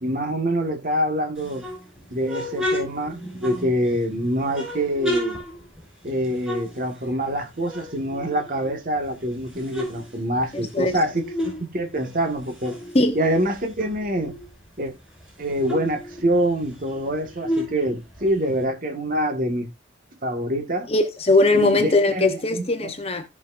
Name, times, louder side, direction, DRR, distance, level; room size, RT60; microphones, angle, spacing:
voice 1, 0.0-1.6 2.1-5.4 6.0-12.8 13.1-14.3 14.8-14.9 15.4-19.7 20.2-20.9 21.5-22.9, right 1 dB, 45° right, 1.5 m, -25 dB
sound 1, 1.4-4.0 4.5-7.4 7.6-9.0 9.4-11.6 11.9-14.5 14.9-15.0 15.2-18.6, left 1 dB, 5° right, 5.7 m, -32 dB
voice 2, 10.5-11.0 12.9-13.2 20.9-23.3, left 2 dB, 30° left, 0.9 m, -20 dB
16.5 x 6.1 x 2.5 m
head